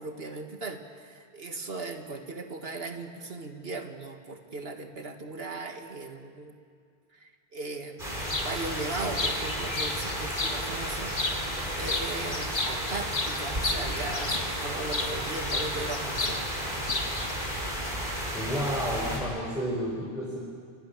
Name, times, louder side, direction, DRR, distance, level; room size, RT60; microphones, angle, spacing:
voice 1, 0.0-6.5 7.2-8.1 8.4-16.5, right 3 dB, 70° right, 5 dB, 2.1 m, -38 dB
sound 1, 8.0-19.2, equal, 50° right, 6.2 m, -33 dB
sound 2, 8.3-8.5 8.9-10.6 11.1-11.6 11.9-15.1 15.5-16.4 16.7-17.3, left 3 dB, 75° left, 2.3 m, -32 dB
voice 2, 18.3-20.4, equal, 5° right, -6 dB, 5.8 m, -31 dB
29.5 x 25.5 x 7.4 m, 2.1 s
omnidirectional pair, 1.1 m